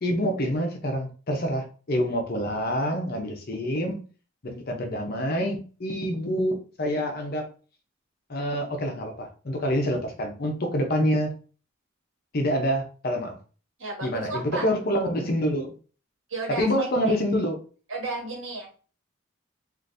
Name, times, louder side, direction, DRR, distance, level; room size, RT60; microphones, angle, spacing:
voice 1, 0.0-4.0 4.4-7.5 8.3-11.4 12.3-13.4 14.0-15.7 16.5-17.6, equal, 50° left, 4 dB, 0.7 m, -27 dB
voice 2, 13.8-14.7 16.3-17.2 17.9-18.8, right 3 dB, 70° right, 0 dB, 1.2 m, -33 dB
3.7 x 2.5 x 2.6 m, 0.38 s
head